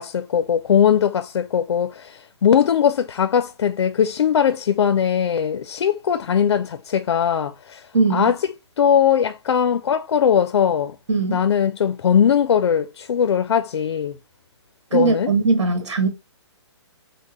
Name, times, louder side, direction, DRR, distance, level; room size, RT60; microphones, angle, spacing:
voice 1, 0.0-7.8 8.1-8.4 8.8-11.0 11.3-14.2 14.9-15.3, left 8 dB, 80° left, 0.4 m, -20 dB
voice 2, 7.9-8.3 11.1-11.5 14.9-16.1, right 3 dB, 80° right, 1.5 m, -20 dB
5.4 x 2.1 x 3.1 m
hypercardioid pair, 170°, 15 cm